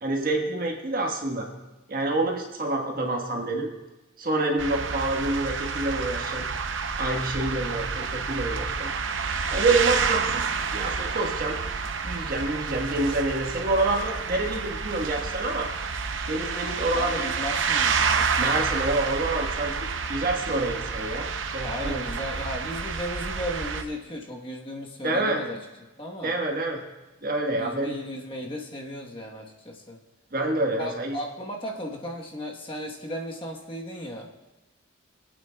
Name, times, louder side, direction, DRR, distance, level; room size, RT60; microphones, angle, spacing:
voice 1, 0.0-1.5 1.9-3.7 4.2-6.4 7.0-8.9 9.5-10.4 10.7-11.6 12.0-15.7 16.3-17.3 18.4-19.7 20.1-22.0 25.0-25.4 26.2-26.8 27.2-27.9 30.3-31.2, right 2 dB, 45° right, 1 dB, 1.4 m, -27 dB
sound 1, 4.6-23.8, right 5 dB, 70° right, 0.7 m, -29 dB
voice 2, 16.9-18.2 21.6-25.6 26.0-26.3 27.5-30.0 30.7-34.3, equal, 25° left, 0 dB, 1.1 m, -35 dB
24.5 x 8.6 x 2.3 m, 1.1 s
head